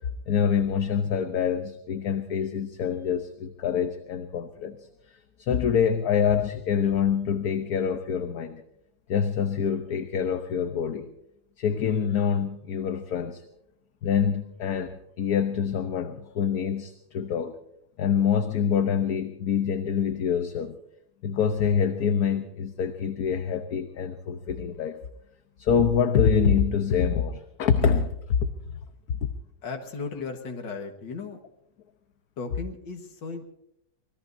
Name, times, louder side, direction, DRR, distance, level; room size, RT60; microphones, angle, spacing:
voice 1, 0.3-4.9 5.4-8.6 9.1-11.1 11.6-13.4 14.0-17.5 18.0-20.8 21.2-25.0 25.6-28.4 28.7-28.8 29.1-29.3, left 7 dB, 60° left, 8 dB, 1.3 m, -25 dB
voice 2, 29.6-31.4 32.4-33.5, left 4 dB, 80° left, 3 dB, 2.3 m, -36 dB
25.5 x 20.5 x 2.7 m, 0.76 s
omnidirectional pair, 2.0 m